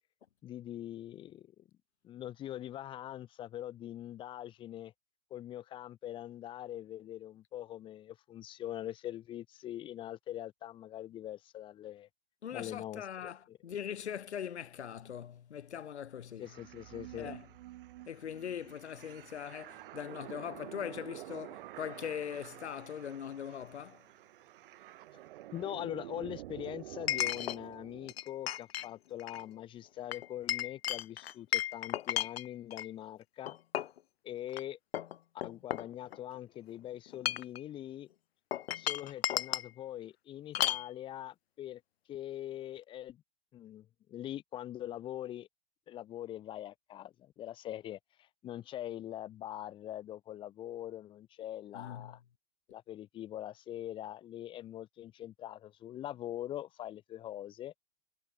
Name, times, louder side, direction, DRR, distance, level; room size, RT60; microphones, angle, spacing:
voice 1, 0.4-1.6 2.0-4.9 5.3-12.1 12.5-13.6 16.4-17.3 25.5-33.6 34.2-34.8 35.4-38.1 38.8-41.8 42.1-43.2 43.5-45.5 45.9-52.2 52.7-57.7, left 12 dB, 15° left, 0.8 m, -43 dB
voice 2, 12.4-16.5 17.2-17.4 18.1-24.0 51.7-52.1, left 9 dB, 80° left, 1.7 m, -41 dB
sound 1, 16.4-28.1, right 15 dB, 50° right, 1.8 m, -49 dB
Chink clink, 23.6-23.7 27.1-27.6 28.1-28.9 29.2-29.4 30.1-32.9 33.5-34.0 34.5-34.6 34.9-36.4 37.1-37.6 38.5-39.7 40.5-40.9, left 12 dB, 65° left, 1.3 m, -34 dB
hypercardioid pair, 140°, 33 cm